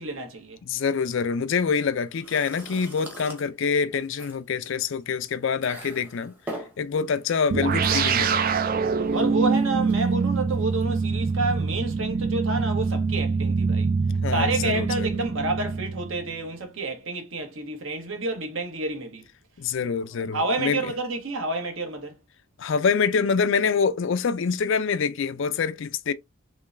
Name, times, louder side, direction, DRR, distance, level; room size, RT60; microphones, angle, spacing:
voice 1, 0.0-0.6 8.7-13.9 14.3-19.2 20.3-22.1, right 2 dB, 60° right, 1.1 m, -29 dB
voice 2, 0.6-6.3 6.8-8.5 14.2-15.1 19.6-20.9 22.6-26.1, left 5 dB, 55° left, 0.4 m, -26 dB
sound 1, 1.0-11.9, right 1 dB, 10° right, 0.9 m, -45 dB
sound 2, 7.5-16.3, right 5 dB, 40° right, 0.3 m, -25 dB
3.8 x 3.1 x 2.5 m
head